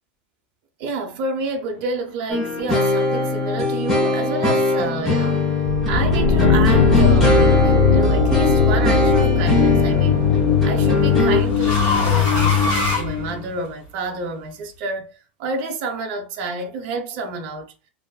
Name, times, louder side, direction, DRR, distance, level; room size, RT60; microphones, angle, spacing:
voice 1, 0.8-5.5 5.9-10.3 10.6-17.7, right 3 dB, 45° right, 0.5 m, -29 dB
sound 1, 2.3-11.4, left 3 dB, 5° left, 0.7 m, -20 dB
sound 2, 5.7-13.5, left 5 dB, 70° left, 0.5 m, -19 dB
sound 3, 8.0-8.4 9.9-13.9, left 2 dB, 40° left, 1.2 m, -26 dB
2.5 x 2.3 x 2.2 m
supercardioid pair, 165°, 6 cm